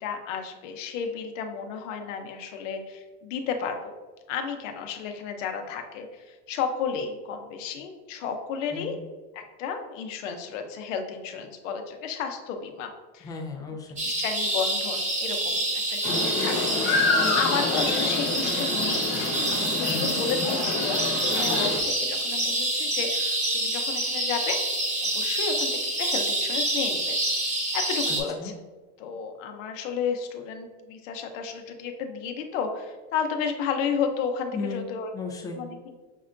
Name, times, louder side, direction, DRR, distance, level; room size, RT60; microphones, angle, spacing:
voice 1, 0.0-3.9 4.3-8.9 9.3-13.3 14.0-17.0 17.3-19.1 19.5-21.0 21.3-24.6 25.0-27.2 27.7-28.5 29.0-35.1 35.6-36.0, left 6 dB, 90° left, 5 dB, 0.7 m, -32 dB
voice 2, 13.2-14.0 19.9-20.2 28.1-28.5 34.5-34.9 35.1-35.6, left 4 dB, 10° left, 0 dB, 0.3 m, -35 dB
sound 1, 14.0-28.2, right 1 dB, 20° right, 0.8 m, -27 dB
sound 2, 16.0-21.8, left 3 dB, 60° left, 1.0 m, -28 dB
6.2 x 2.2 x 2.5 m, 1.3 s
supercardioid pair, 135°, 37 cm